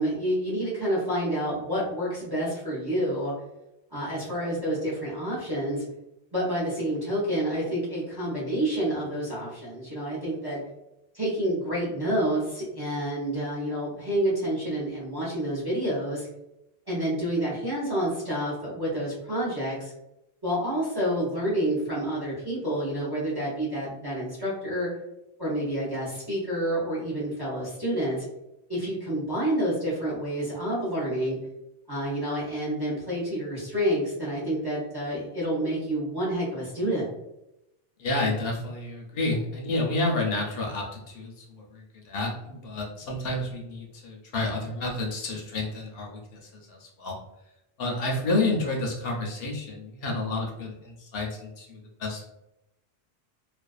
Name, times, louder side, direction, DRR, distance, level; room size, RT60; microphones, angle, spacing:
voice 1, 0.0-3.3 3.9-5.8 6.3-10.6 11.1-16.3 16.9-19.9 20.4-24.9 25.4-28.2 28.7-31.4 31.9-37.1, right 1 dB, 30° right, -7 dB, 0.6 m, -28 dB
voice 2, 38.0-47.2 47.8-52.2, left 2 dB, 65° left, -1 dB, 0.7 m, -30 dB
2.4 x 2.2 x 2.3 m, 0.90 s
omnidirectional pair, 1.1 m